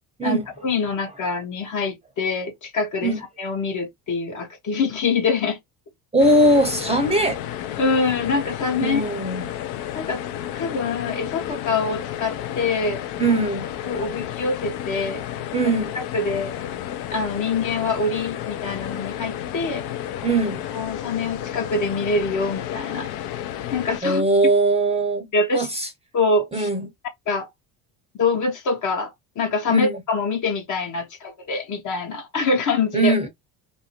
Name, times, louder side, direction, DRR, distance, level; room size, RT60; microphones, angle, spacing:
voice 1, 0.2-5.6 7.8-9.0 9.9-10.2 10.5-13.4 13.8-15.2 15.6-16.5 17.1-19.9 20.7-23.1 23.7-24.3 25.3-25.7 26.1-26.7 27.3-27.5 28.1-33.1, left 4 dB, 45° left, 0.9 m, -25 dB
voice 2, 6.1-7.4 8.8-9.4 13.2-13.7 15.5-16.0 20.2-20.6 24.0-25.3 25.5-25.9 26.5-26.9 29.7-30.0 32.9-33.3, right 2 dB, 15° right, 0.6 m, -20 dB
sound 1, 6.2-24.0, left 11 dB, 60° left, 0.6 m, -32 dB
2.6 x 2.1 x 2.9 m
hypercardioid pair, 70°, 44 cm